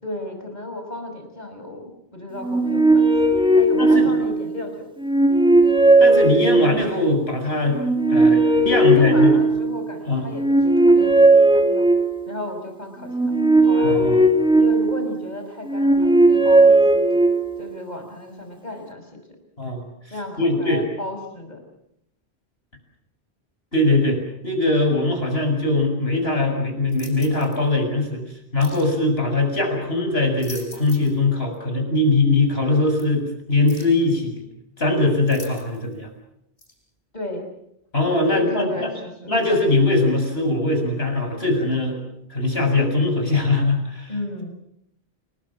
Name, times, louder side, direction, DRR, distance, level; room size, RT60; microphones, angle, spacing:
voice 1, 0.0-3.1 3.5-4.9 8.7-11.9 12.3-14.0 14.5-17.3 17.6-19.1 20.1-21.6 37.1-37.5 38.3-39.3 44.1-44.5, left 2 dB, 40° left, 5 dB, 6.1 m, -33 dB
sound 1, 2.4-4.5 5.0-7.0 7.7-9.9 10.3-12.4 13.1-15.2 15.7-17.7, right 2 dB, 5° right, 2.0 m, -16 dB
voice 2, 3.8-4.1 6.0-7.8 8.1-9.3 10.1-10.3 13.8-14.2 19.6-19.9 20.4-20.8 23.7-28.2 28.5-34.4 34.8-36.1 37.9-38.9 39.3-42.0 42.3-44.1, left 2 dB, 70° left, 4 dB, 7.3 m, -21 dB
sound 2, 26.9-27.6 28.6-28.9 30.2-31.2 31.5-31.6 33.0-33.1 33.7-34.0 35.3-35.9 36.6-36.7, left 2 dB, 55° left, 6.9 m, -42 dB
29.0 x 21.0 x 7.4 m, 0.77 s
omnidirectional pair, 1.1 m